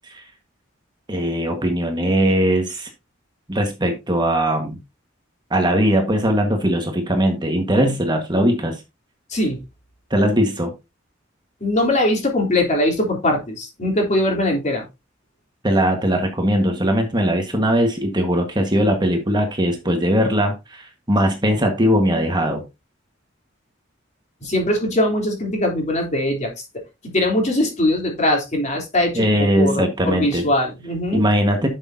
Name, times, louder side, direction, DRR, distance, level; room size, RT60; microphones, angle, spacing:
voice 1, 1.1-2.9 3.5-4.8 5.5-8.8 10.1-10.7 15.6-22.6 29.1-30.5 31.1-31.7, equal, 25° right, 1.6 m, -20 dB
voice 2, 9.3-9.6 11.6-14.8 24.4-26.5 27.0-31.2, left 1 dB, 40° left, 3.4 m, -21 dB
11.0 x 6.4 x 2.8 m
head